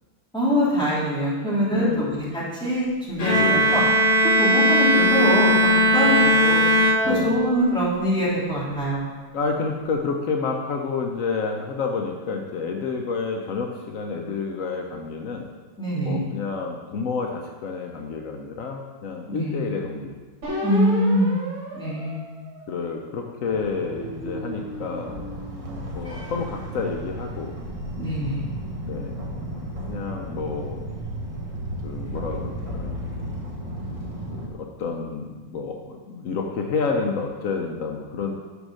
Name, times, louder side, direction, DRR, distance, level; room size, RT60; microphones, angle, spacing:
voice 1, 0.3-2.2 2.6-3.8 4.4-6.6 7.1-9.1 15.8-16.2 19.3-19.6 20.6-21.3 21.8-22.2 28.0-28.4, equal, ahead, -9 dB, 2.9 m, -23 dB
voice 2, 1.7-2.2 3.4-3.9 6.0-6.2 7.0-7.4 9.3-15.5 16.0-20.2 22.7-25.2 25.9-27.6 28.8-29.2 29.9-30.9 31.8-33.0 34.3-38.3, left 4 dB, 85° left, 2 dB, 0.7 m, -29 dB
Bowed string instrument, 3.2-7.6, equal, 65° left, 2.4 m, -18 dB
sound 1, 20.4-23.1 23.7-26.2, right 1 dB, 65° right, 2.8 m, -35 dB
sound 2, 23.5-34.5, equal, 30° right, 0.7 m, -34 dB
6.5 x 6.3 x 6.3 m, 1.3 s
omnidirectional pair, 2.4 m